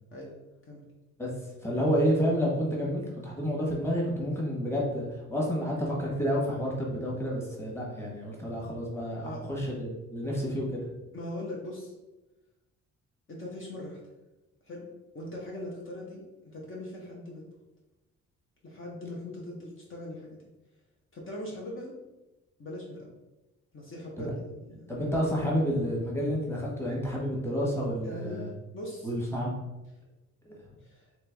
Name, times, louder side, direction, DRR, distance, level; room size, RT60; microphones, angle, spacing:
voice 1, 1.6-10.8 24.2-24.3 24.9-28.5 29.0-29.5 30.4-30.5, equal, 10° left, -3 dB, 1.3 m, -30 dB
voice 2, 11.1-11.9 13.3-14.0 14.7-14.9 15.1-17.4 18.6-20.4 21.1-21.9 22.6-23.1 23.7-24.9 28.0-28.4 28.7-29.1 30.8-31.1, left 1 dB, 45° left, -3 dB, 1.0 m, -40 dB
3.3 x 3.0 x 3.4 m, 1.0 s
cardioid pair, 90°, 30 cm